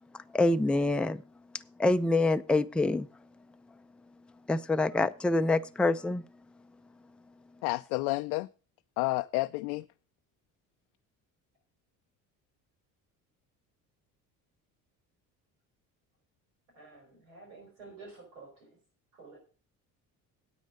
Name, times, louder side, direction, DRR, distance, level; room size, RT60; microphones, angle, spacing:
voice 1, 0.1-1.2 1.8-3.1 4.5-6.2, left 2 dB, ahead, 9 dB, 0.5 m, -26 dB
voice 2, 7.6-8.5 9.0-9.8, left 22 dB, 80° left, 9 dB, 0.5 m, -30 dB
voice 3, 16.7-18.8 19.1-19.4, right 3 dB, 90° right, 1 dB, 5.0 m, -51 dB
9.4 x 8.4 x 5.4 m, 0.37 s
hypercardioid pair, 65°, 42 cm